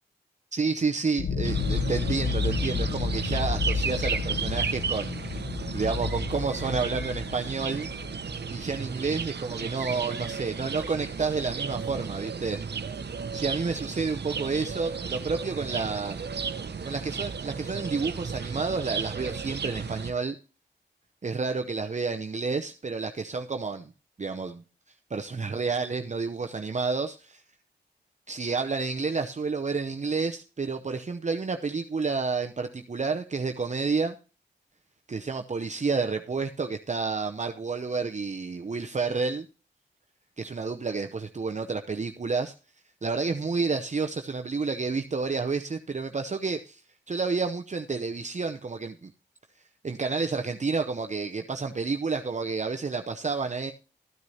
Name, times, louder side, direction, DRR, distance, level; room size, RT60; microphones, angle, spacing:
voice 1, 0.5-5.4 5.7-7.9 8.2-12.6 13.3-16.2 16.8-20.4 21.2-23.9 24.2-24.6 25.1-27.4 28.3-34.2 35.1-39.5 40.4-42.5 43.0-46.8 47.1-49.1 49.8-53.7, right 4 dB, 40° right, 0.7 m, -30 dB
sound 1, 1.2-9.4, left 5 dB, 80° left, 0.8 m, -31 dB
sound 2, 1.4-20.1, right 5 dB, 65° right, 0.9 m, -34 dB
13.5 x 9.4 x 2.8 m
cardioid pair, 55°, 18 cm